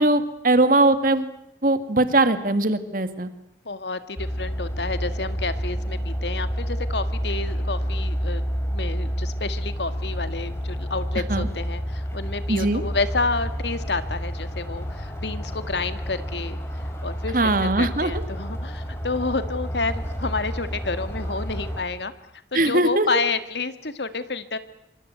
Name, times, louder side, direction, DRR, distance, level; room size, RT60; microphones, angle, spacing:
voice 1, 0.0-1.3 1.6-3.3 11.3-11.5 12.5-12.8 17.3-18.1 22.5-23.1, right 2 dB, 50° right, 10 dB, 2.1 m, -20 dB
voice 2, 3.7-8.4 8.7-16.6 17.0-22.1 22.5-24.6, left 3 dB, 80° left, 11 dB, 2.0 m, -29 dB
sound 1, 4.2-21.8, equal, 15° left, 4.3 m, -29 dB
26.5 x 24.0 x 8.1 m, 0.81 s
head